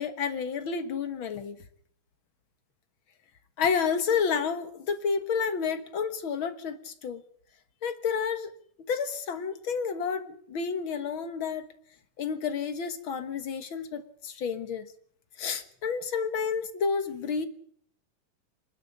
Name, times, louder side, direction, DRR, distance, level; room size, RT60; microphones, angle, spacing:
voice 1, 0.0-1.6 3.6-7.2 7.8-8.5 8.9-11.6 12.2-14.9 15.4-17.5, left 6 dB, 55° left, 10 dB, 1.5 m, -30 dB
26.5 x 12.0 x 10.0 m, 0.65 s
omnidirectional pair, 4.0 m